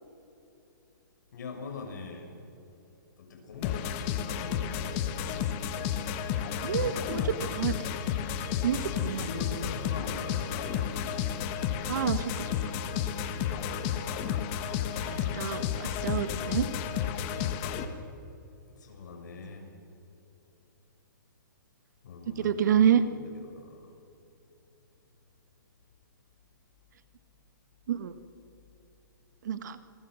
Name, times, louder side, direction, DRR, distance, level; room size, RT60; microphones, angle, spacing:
voice 1, 1.3-2.3 3.2-4.9 6.5-7.4 8.9-11.0 13.1-13.5 18.7-19.7 22.0-24.0, left 4 dB, 60° left, 3 dB, 6.4 m, -43 dB
sound 1, 3.6-17.8, left 8 dB, 30° left, 1.5 m, -32 dB
voice 2, 6.6-7.2 7.5-7.8 8.6-9.3 11.9-12.5 15.0-16.7 22.4-23.0 27.9-28.1 29.4-29.8, right 9 dB, 60° right, 11 dB, 1.5 m, -28 dB
27.5 x 22.5 x 6.4 m, 2.8 s
hypercardioid pair, 160°, 11 cm